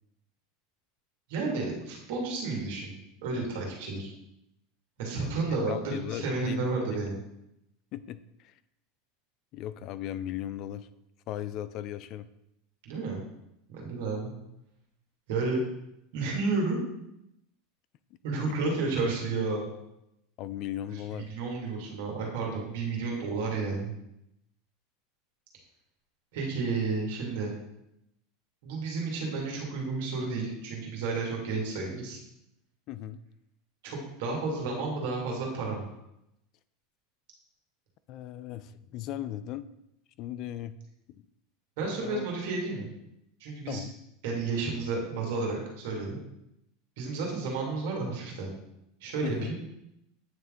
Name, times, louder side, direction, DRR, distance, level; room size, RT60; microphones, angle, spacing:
voice 1, 1.3-2.9 3.2-4.1 5.0-7.2 12.8-13.2 13.7-14.3 15.3-15.6 16.1-16.8 18.2-19.7 21.3-23.9 26.3-27.5 28.6-32.2 33.8-35.9 41.8-42.9 43.4-43.8 44.2-46.2 47.0-48.5 49.0-49.4, right 3 dB, 75° right, -2 dB, 2.2 m, -31 dB
voice 2, 5.1-7.2 7.9-8.5 9.5-10.9 11.3-12.3 18.5-18.6 20.4-21.4 32.9-33.2 38.1-39.7 40.2-40.8 41.1-41.2 42.0-42.3 43.7-43.9 49.2-49.5, left 12 dB, 50° left, 14 dB, 0.4 m, -37 dB
8.8 x 3.4 x 3.7 m, 0.83 s
supercardioid pair, 110°, 0 cm